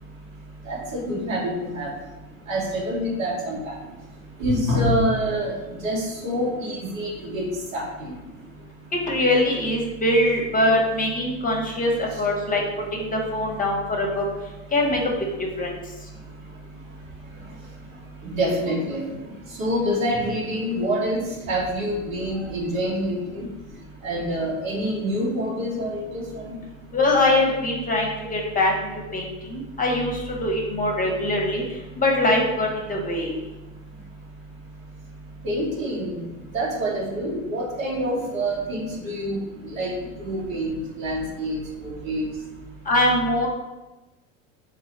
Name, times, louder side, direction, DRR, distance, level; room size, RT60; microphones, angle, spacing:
voice 1, 0.6-1.9 2.5-3.8 4.4-7.5 7.7-8.1 12.1-12.2 18.2-19.1 19.5-21.2 21.5-23.5 24.0-26.6 35.4-36.2 36.5-39.9 40.2-42.3, equal, 80° right, -3 dB, 1.4 m, -26 dB
voice 2, 9.1-12.6 12.9-14.2 14.7-15.0 15.6-15.7 26.9-31.6 32.0-33.3 42.9-43.5, left 1 dB, 20° left, 0 dB, 0.8 m, -22 dB
3.7 x 2.3 x 4.5 m, 1.1 s
hypercardioid pair, 100°, 40 cm